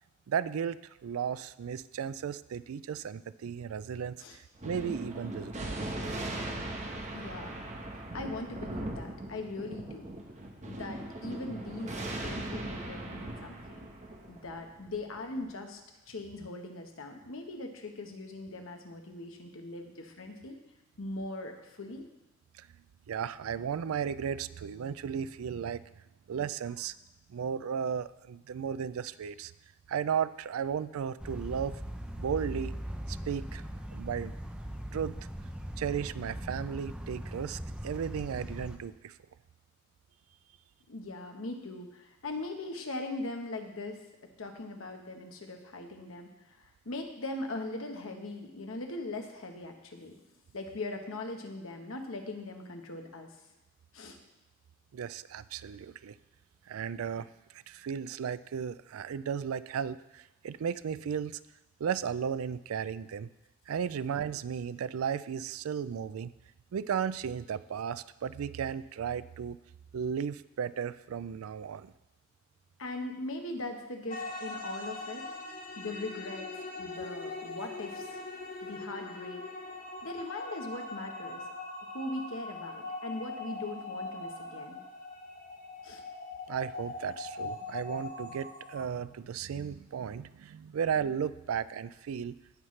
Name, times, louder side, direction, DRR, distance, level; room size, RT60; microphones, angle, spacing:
voice 1, 0.3-5.7 22.6-22.7 23.1-25.8 26.3-26.9 27.3-29.5 29.9-31.7 32.2-32.7 33.1-33.6 33.9-34.3 34.9-35.3 35.8-39.1 54.9-56.2 56.7-57.3 57.5-61.4 61.8-63.3 63.7-66.3 66.7-69.6 69.9-71.9 86.5-92.4, right 7 dB, 90° right, 16 dB, 0.4 m, -35 dB
Thunder, 4.6-15.5, right 1 dB, 35° right, 1.1 m, -39 dB
voice 2, 7.1-7.6 8.1-10.1 10.7-13.6 14.3-15.8 16.1-20.6 21.0-22.1 40.9-50.1 50.5-53.3 53.9-54.2 72.8-75.3 75.8-76.5 76.8-78.2 78.6-79.4 80.0-81.4 81.8-84.8 85.8-86.0, left 2 dB, 70° left, 3 dB, 1.1 m, -40 dB
sound 1, 31.2-38.8, equal, 5° right, 0.6 m, -40 dB
sound 2, 74.1-88.8, left 3 dB, 40° left, 1.0 m, -41 dB
16.5 x 5.7 x 3.2 m, 0.98 s
head